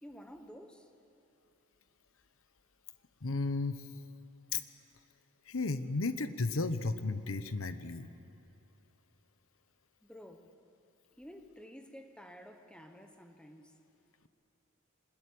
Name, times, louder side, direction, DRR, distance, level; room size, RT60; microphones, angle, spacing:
voice 1, 0.0-0.9 10.0-10.5 11.2-13.8, equal, 5° left, 1.2 m, -51 dB
voice 2, 3.2-3.8 4.5-4.6 5.5-8.1, left 3 dB, 75° left, 1.0 m, -33 dB
25.0 x 20.0 x 8.7 m
head